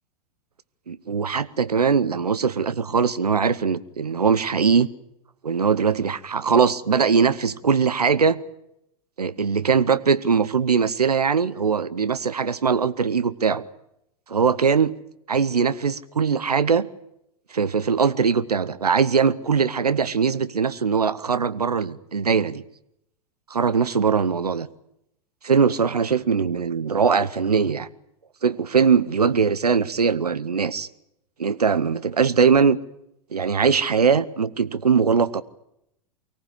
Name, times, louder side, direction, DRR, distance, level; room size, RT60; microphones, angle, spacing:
voice 1, 0.9-4.9 5.4-8.4 9.2-13.6 14.3-14.9 15.3-16.9 17.5-22.6 23.5-24.7 25.4-27.9 28.4-30.9 31.4-32.8 33.3-35.4, right 6 dB, 85° right, 16 dB, 0.9 m, -21 dB
24.0 x 18.0 x 9.7 m, 0.81 s
figure-of-eight pair, 95°, 19 cm